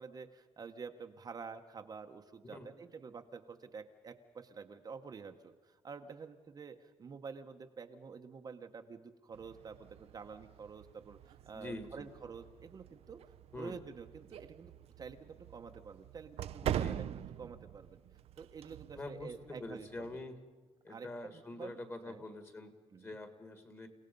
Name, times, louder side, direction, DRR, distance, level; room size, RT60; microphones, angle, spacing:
voice 1, 0.0-13.2 13.6-14.7 15.0-18.0 18.4-20.1 20.9-21.1 21.3-21.8 22.1-22.2 22.9-23.1, right 5 dB, 35° right, 5 dB, 0.9 m, -49 dB
sound 1, 9.3-20.2, right 11 dB, 65° right, 0.5 m, -44 dB
voice 2, 11.5-12.1 13.5-13.8 16.6-17.1 18.9-20.4 20.8-23.9, left 2 dB, 20° left, 8 dB, 2.0 m, -45 dB
29.5 x 17.5 x 5.3 m, 1.4 s
cardioid pair, 155°, 11 cm